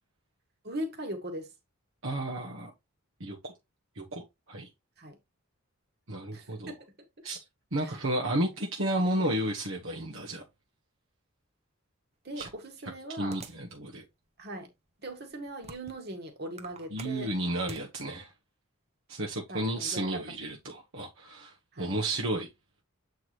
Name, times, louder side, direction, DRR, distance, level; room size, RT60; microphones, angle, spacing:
voice 1, 0.6-1.5 5.0-5.2 6.3-6.8 7.8-8.0 8.4-8.5 9.0-9.4 12.2-13.4 14.4-14.7 15.0-17.3 19.5-20.2 21.7-22.0, right 1 dB, 50° right, 1.9 m, -40 dB
voice 2, 2.0-2.7 3.2-3.5 3.9-4.7 6.1-6.7 7.2-7.4 7.7-10.4 12.4-12.5 13.2-14.0 16.9-18.3 19.1-22.5, right 1 dB, 65° right, 1.3 m, -32 dB
sound 1, 12.4-13.7 14.3-14.4 15.1-16.1 16.4-17.9, right 4 dB, 30° right, 0.9 m, -46 dB
8.0 x 4.8 x 3.1 m
head